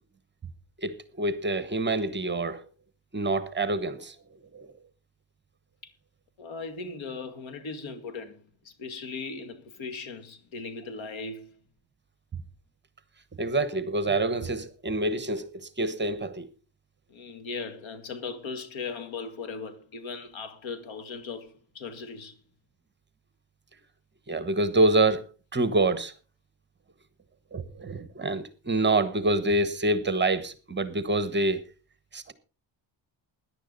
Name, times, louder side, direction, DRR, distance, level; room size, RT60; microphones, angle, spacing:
voice 1, 0.8-2.6 3.1-4.1 4.5-4.7 13.4-16.5 24.3-25.2 25.5-26.1 27.5-31.6 32.1-32.3, right 2 dB, 25° right, 1.1 m, -26 dB
voice 2, 6.4-11.5 17.1-22.3, left 4 dB, 75° left, 2.3 m, -38 dB
17.0 x 10.5 x 4.0 m
cardioid pair, 135°, 47 cm